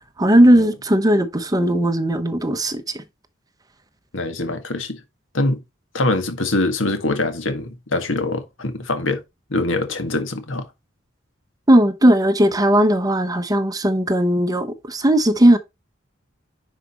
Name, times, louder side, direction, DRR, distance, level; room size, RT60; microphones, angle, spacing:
voice 1, 0.2-3.0 11.7-15.6, right 1 dB, 20° right, 1.0 m, -17 dB
voice 2, 4.1-5.0 5.3-5.6 5.9-9.2 9.5-10.7, left 2 dB, 85° left, 1.7 m, -23 dB
10.0 x 5.0 x 3.0 m
head